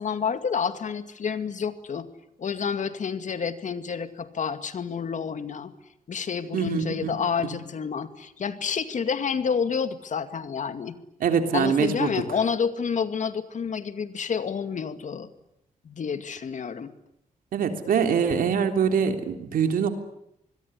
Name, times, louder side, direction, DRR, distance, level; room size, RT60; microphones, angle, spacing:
voice 1, 0.0-2.1 2.4-5.7 6.1-11.0 11.5-15.3 15.8-16.9, left 6 dB, 60° left, 10 dB, 2.3 m, -29 dB
voice 2, 6.5-7.2 7.4-7.6 11.2-12.1 17.5-19.9, right 7 dB, 90° right, 7 dB, 3.4 m, -24 dB
26.0 x 21.5 x 9.9 m, 0.80 s
cardioid pair, 85°, 14 cm